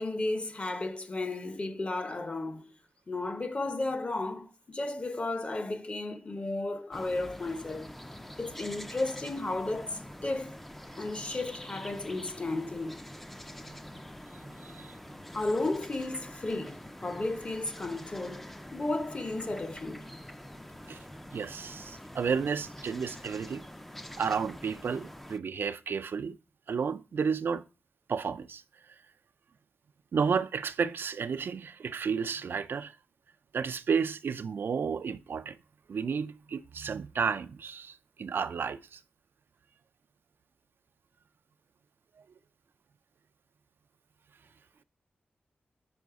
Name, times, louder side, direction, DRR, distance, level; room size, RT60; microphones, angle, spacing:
voice 1, 0.0-2.7 3.1-7.9 8.4-10.6 11.0-13.0 15.3-20.1, left 2 dB, 35° left, 0.8 m, -34 dB
sound 1, 6.9-25.4, left 1 dB, 5° left, 0.4 m, -46 dB
voice 2, 14.6-14.9 20.9-21.0 21.3-23.6 24.2-26.4 26.7-27.6 28.1-28.6 30.1-32.9 33.5-35.6 35.9-39.0, right 6 dB, 70° right, 0.3 m, -32 dB
5.4 x 5.2 x 4.7 m
wide cardioid pair, 115°, 4 cm